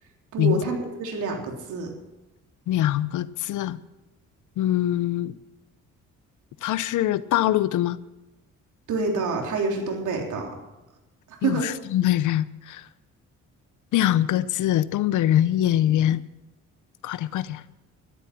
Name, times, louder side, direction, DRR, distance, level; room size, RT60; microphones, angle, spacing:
voice 1, 0.3-1.9 8.9-10.6 11.4-11.7, right 3 dB, 80° right, 1 dB, 3.6 m, -27 dB
voice 2, 2.7-3.8 4.6-5.3 6.6-8.0 11.4-12.8 13.9-16.2 17.0-17.6, left 12 dB, 80° left, 17 dB, 0.8 m, -23 dB
13.5 x 12.5 x 5.9 m, 1.0 s
cardioid pair, 90°, 30 cm